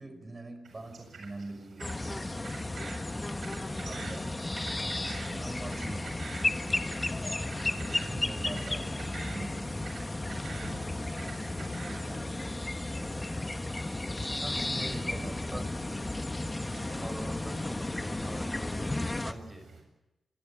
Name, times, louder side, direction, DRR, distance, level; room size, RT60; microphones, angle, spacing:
voice 1, 0.0-2.0 3.8-4.4 5.3-7.1 7.7-9.8 10.6-12.5 14.5-15.7, right 2 dB, 30° right, 10 dB, 5.3 m, -44 dB
sound 1, 0.6-19.8, right 4 dB, 65° right, 7.6 m, -49 dB
sound 2, 1.8-19.3, left 2 dB, 20° left, 1.4 m, -34 dB
voice 2, 14.3-15.6 16.7-19.7, right 1 dB, 10° right, 6 dB, 6.0 m, -45 dB
26.0 x 19.5 x 8.7 m, 0.91 s
cardioid pair, 90°, 0 cm